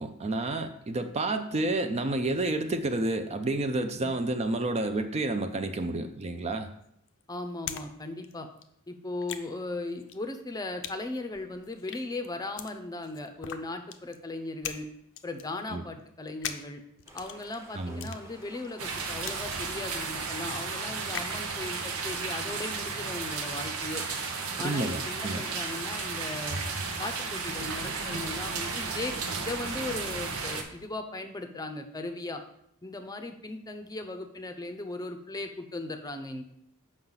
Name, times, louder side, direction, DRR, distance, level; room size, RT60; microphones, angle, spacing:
voice 1, 0.0-6.7 15.7-15.8 17.7-18.1 24.6-25.4, right 2 dB, 30° right, 7 dB, 0.4 m, -30 dB
sound 1, 6.5-7.9 8.1-21.4, left 9 dB, 60° left, 0.5 m, -43 dB
voice 2, 7.3-8.5 8.9-14.9 15.2-16.8 17.1-24.0 24.6-26.6 27.0-32.4 32.8-36.4, left 2 dB, 20° left, 6 dB, 0.6 m, -37 dB
sound 2, 17.1-24.7, right 1 dB, 15° right, 0.9 m, -52 dB
sound 3, 18.8-30.6, right 4 dB, 90° right, 0.9 m, -34 dB
7.2 x 5.4 x 3.9 m, 0.72 s
head